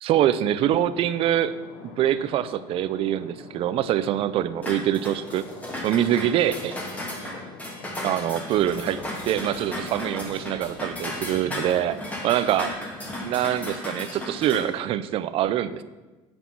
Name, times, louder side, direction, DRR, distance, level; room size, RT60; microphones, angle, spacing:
voice 1, 0.0-1.5 1.8-5.4 5.8-6.8 8.0-12.0 12.2-12.8 13.2-15.8, right 11 dB, 45° right, 15 dB, 0.6 m, -24 dB
sound 1, 0.6-11.2, left 4 dB, 85° left, 1.8 m, -45 dB
sound 2, 4.6-14.6, left 1 dB, 10° left, 2.2 m, -35 dB
Male speech man speaking / Chatter / Rattle, 8.5-13.5, equal, 35° left, 3.4 m, -49 dB
9.4 x 8.0 x 6.0 m, 1.2 s
cardioid pair, 140°, 13 cm